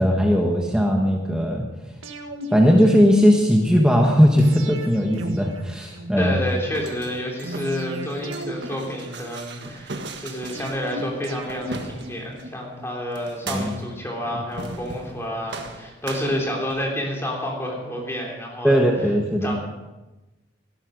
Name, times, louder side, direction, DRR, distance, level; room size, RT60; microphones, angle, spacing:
voice 1, 0.0-1.6 2.5-6.4 13.5-13.7 18.6-19.5, equal, 5° right, 0 dB, 1.2 m, -18 dB
sound 1, 2.0-3.6 4.4-6.5 7.4-9.7 10.5-12.9 13.5-15.2 15.5-15.6, right 1 dB, 90° right, 1.8 m, -37 dB
voice 2, 6.2-18.8 19.4-19.5, equal, 15° left, -1 dB, 3.4 m, -29 dB
sound 2, 6.5-12.5 13.2-14.0 14.5-15.2 15.5-17.0, right 3 dB, 55° right, 1.7 m, -38 dB
17.5 x 12.5 x 5.2 m, 1.1 s
head